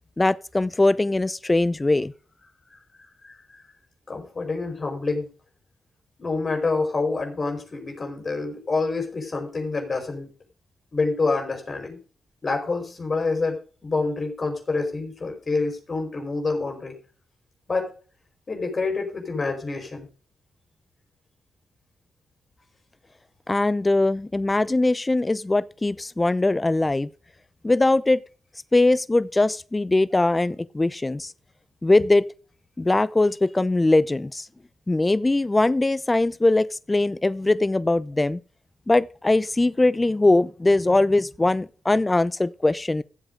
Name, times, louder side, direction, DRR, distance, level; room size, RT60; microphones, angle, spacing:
voice 1, 0.2-2.1 23.5-27.1 27.6-28.2 28.7-31.3 31.8-32.2 32.8-34.5 34.9-38.4 38.9-43.0, left 2 dB, 25° left, 0.7 m, -21 dB
voice 2, 4.1-5.3 6.2-10.3 10.9-12.0 12.4-13.6 13.8-17.0 17.7-17.9 18.5-20.1, left 3 dB, 45° left, 4.7 m, -27 dB
15.0 x 7.9 x 3.7 m
hypercardioid pair, 40°, 0 cm